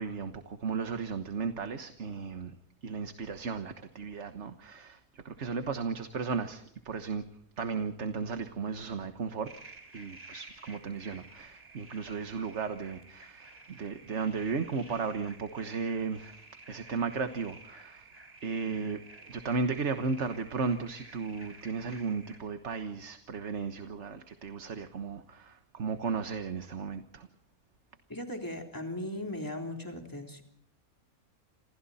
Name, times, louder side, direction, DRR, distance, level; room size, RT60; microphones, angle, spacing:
voice 1, 0.0-2.6 2.8-7.2 7.6-9.5 9.9-16.4 16.7-18.1 18.4-19.0 19.3-27.3, right 5 dB, 55° right, 8 dB, 1.5 m, -35 dB
sound 1, 9.4-22.4, right 3 dB, 25° right, 4.9 m, -52 dB
voice 2, 28.1-30.4, left 1 dB, 15° left, 3 dB, 3.6 m, -38 dB
29.5 x 27.0 x 4.2 m, 0.70 s
omnidirectional pair, 1.5 m